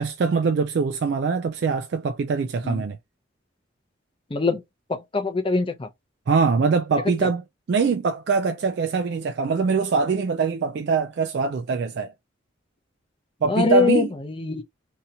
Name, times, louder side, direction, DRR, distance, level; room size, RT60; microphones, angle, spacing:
voice 1, 0.0-3.0 6.3-12.1 13.4-14.1, right 5 dB, 55° right, 0.3 m, -23 dB
voice 2, 4.3-4.6 4.9-5.9 13.5-14.6, left 4 dB, 25° left, 0.5 m, -23 dB
2.8 x 2.7 x 2.2 m
head